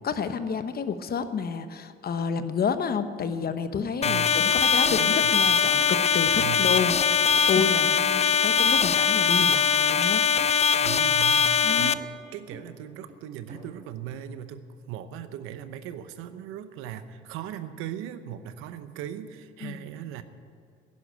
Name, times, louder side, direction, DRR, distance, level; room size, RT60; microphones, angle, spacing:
voice 1, 0.0-10.2 11.6-12.0 19.6-19.8, left 6 dB, 50° left, 11 dB, 1.0 m, -30 dB
sound 1, 3.3-3.4 3.9-4.0 4.3-5.0 5.4-5.5 5.8-7.0 7.3-8.0 8.4-8.5 8.8-9.1 9.4-9.5 10.0-10.6 10.9-11.1 11.5-11.6 11.9-12.2 12.5-12.7 13.1-13.2 13.5-13.8, equal, 40° right, 3.6 m, -48 dB
sound 2, 4.0-11.9, left 6 dB, 30° left, 0.5 m, -22 dB
voice 2, 4.0-4.5 4.9-5.4 6.4-6.8 10.8-20.2, right 9 dB, 90° right, 11 dB, 0.8 m, -38 dB
11.0 x 11.0 x 8.9 m, 2.4 s
supercardioid pair, 80°, 21 cm